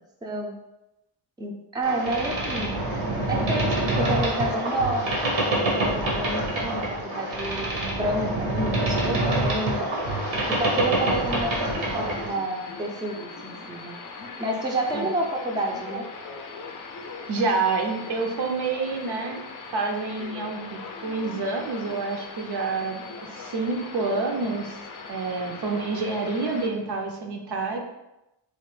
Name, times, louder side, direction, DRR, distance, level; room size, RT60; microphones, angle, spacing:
voice 1, 0.2-0.6 1.4-2.8 3.3-7.7 8.0-9.9 10.5-14.0 14.4-16.0, right 1 dB, 10° right, 0 dB, 0.5 m, -30 dB
Boat Water vehicle, 1.8-12.4, right 1 dB, 80° right, 1.0 m, -26 dB
sound 1, 10.0-26.7, left 4 dB, 45° left, 0.5 m, -40 dB
voice 2, 17.3-19.4 19.7-24.8 25.1-27.8, right 3 dB, 60° right, 2 dB, 0.6 m, -28 dB
3.1 x 2.1 x 3.1 m, 0.93 s
cardioid pair, 65°, 44 cm